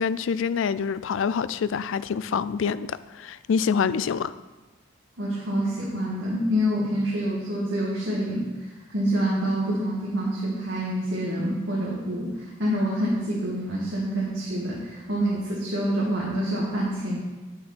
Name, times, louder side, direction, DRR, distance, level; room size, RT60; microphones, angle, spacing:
voice 1, 0.0-4.3, left 6 dB, 65° left, 15 dB, 0.4 m, -26 dB
voice 2, 5.2-17.2, equal, 65° right, -6 dB, 2.0 m, -27 dB
9.7 x 7.0 x 4.2 m, 1.2 s
head